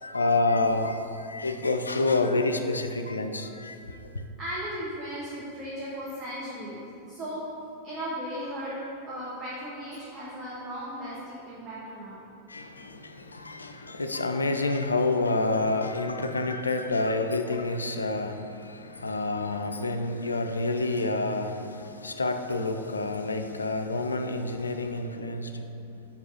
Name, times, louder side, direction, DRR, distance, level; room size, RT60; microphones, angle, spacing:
voice 1, 0.0-3.8 12.5-25.6, left 2 dB, 80° left, 6 dB, 0.4 m, -28 dB
voice 2, 4.4-12.2, equal, 25° right, -7 dB, 1.2 m, -36 dB
5.4 x 4.6 x 5.4 m, 2.7 s
figure-of-eight pair, 90°, 0 cm